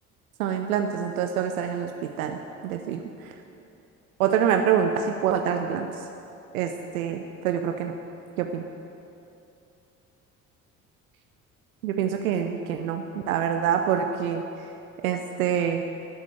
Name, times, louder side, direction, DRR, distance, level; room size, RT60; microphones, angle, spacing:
voice 1, 0.4-3.3 4.2-6.0 6.5-7.9 8.4-8.7 11.8-14.4 15.0-15.8, right 8 dB, 75° right, 5 dB, 0.7 m, -26 dB
11.0 x 8.3 x 8.4 m, 2.8 s
figure-of-eight pair, 50°, 42 cm